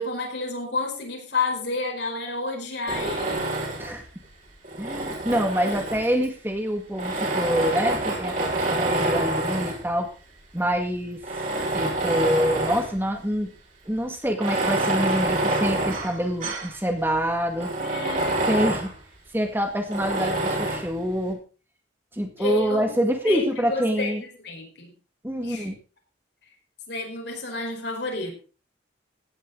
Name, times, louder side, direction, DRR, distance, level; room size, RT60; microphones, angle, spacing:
voice 1, 0.0-3.5 5.6-5.8 17.8-18.4 22.4-22.9 23.2-24.1 24.4-24.9 25.4-25.7 26.9-28.4, left 3 dB, 65° left, 3 dB, 4.9 m, -30 dB
Tools, 2.9-4.0 4.6-6.3 6.9-9.9 10.6-10.7 11.2-13.0 13.3-13.4 14.3-16.7 17.1-17.2 17.6-18.9 19.9-20.9, right 2 dB, 45° right, 5.0 m, -27 dB
voice 2, 4.8-10.1 10.5-11.2 11.7-13.5 13.9-17.7 18.5-18.9 19.3-21.4 22.1-24.2 25.2-25.8, equal, 10° right, 4 dB, 2.0 m, -26 dB
17.0 x 10.5 x 4.0 m, 0.35 s
head